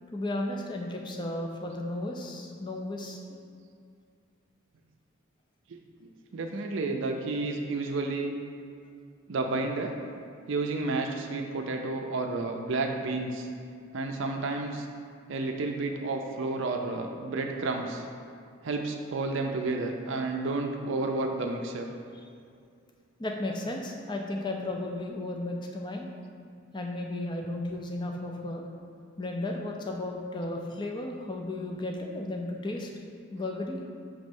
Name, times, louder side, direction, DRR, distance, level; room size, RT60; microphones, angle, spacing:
voice 1, 0.1-3.2 23.2-26.1 26.7-28.6 29.2-32.9 33.3-33.8, left 1 dB, 20° left, 1 dB, 0.4 m, -34 dB
voice 2, 6.0-8.4 9.3-10.0 10.5-13.5 13.9-14.9 15.3-18.0 18.6-21.9, right 3 dB, 60° right, 3 dB, 0.4 m, -31 dB
6.0 x 3.1 x 5.2 m, 2.3 s
head